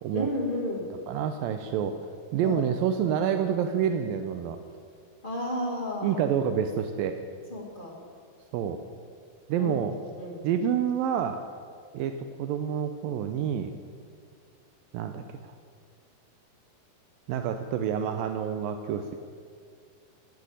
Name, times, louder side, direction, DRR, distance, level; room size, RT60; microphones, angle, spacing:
voice 1, 0.1-0.9 2.4-2.6 5.2-6.2 7.5-8.0 9.6-9.8 10.2-10.5, left 1 dB, 20° left, -1 dB, 1.3 m, -32 dB
voice 2, 1.1-2.0 2.3-4.6 6.0-7.2 8.5-8.8 9.5-9.9 10.4-11.4 11.9-13.8 14.9-15.5 17.3-19.1, right 8 dB, 80° right, 7 dB, 2.1 m, -28 dB
16.5 x 8.7 x 9.2 m, 2.1 s
omnidirectional pair, 4.8 m